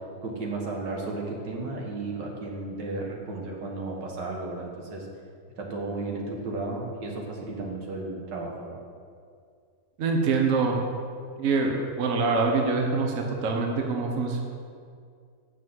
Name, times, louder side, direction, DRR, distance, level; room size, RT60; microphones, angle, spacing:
voice 1, 0.2-5.1 5.6-8.8, right 2 dB, 75° right, 0 dB, 2.0 m, -34 dB
voice 2, 10.0-10.8 11.4-14.4, right 4 dB, 55° right, 2 dB, 1.1 m, -25 dB
6.9 x 6.1 x 7.7 m, 2.2 s
omnidirectional pair, 1.9 m